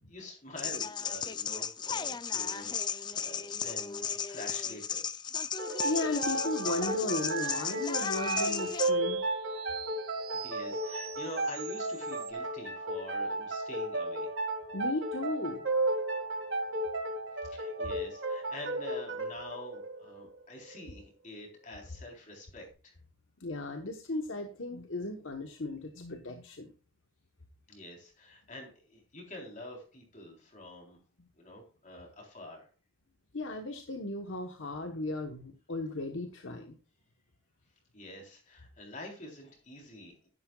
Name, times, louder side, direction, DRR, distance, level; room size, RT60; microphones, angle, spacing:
voice 1, 0.1-5.1 10.3-14.3 17.4-22.9 27.7-31.0 31.4-32.7 37.9-40.3, left 1 dB, 40° left, 1 dB, 3.8 m, -46 dB
sound 1, 0.6-8.9, left 7 dB, 20° left, 0.4 m, -35 dB
sound 2, 5.6-20.9, right 2 dB, 65° right, 2.1 m, -34 dB
voice 2, 5.8-9.2 14.7-15.6 23.4-26.7 31.2-31.3 33.3-36.8, left 2 dB, 65° left, 4 dB, 1.1 m, -36 dB
sound 3, 6.5-12.3, right 11 dB, 90° right, 0.9 m, -43 dB
12.0 x 11.0 x 2.4 m, 0.36 s
head